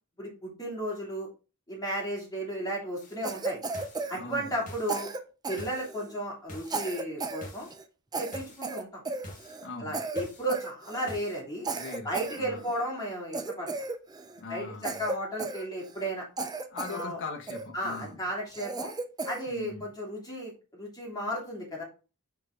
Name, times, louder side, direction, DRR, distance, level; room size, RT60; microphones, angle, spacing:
voice 1, 0.2-1.3 1.7-3.6 4.1-5.1 5.5-7.7 8.2-9.0 9.8-11.7 12.0-13.7 14.5-16.3 16.9-17.2 17.7-18.9 19.2-21.8, right 1 dB, 20° left, -3 dB, 2.8 m, -34 dB
sound 1, 3.0-3.2 3.7-4.1 4.7-5.0 5.6-5.9 6.5-6.8 7.4-7.7 8.3-8.7 9.2-9.6 10.2-10.5 11.1-11.4, equal, 35° left, 1.8 m, -45 dB
Cough, 3.2-4.6 4.9-6.2 6.7-7.5 7.7-7.8 8.1-9.7 9.9-10.2 10.5-11.2 11.6-12.8 13.3-14.4 14.8-16.1 16.4-17.0 17.5-18.0 18.5-19.4, right 3 dB, 20° right, 0.5 m, -35 dB
voice 2, 4.1-4.5 9.6-10.0 11.7-12.7 14.4-15.0 16.7-18.2 19.5-19.9, left 3 dB, 55° left, 0 dB, 1.4 m, -40 dB
5.7 x 4.7 x 3.8 m, 0.33 s
head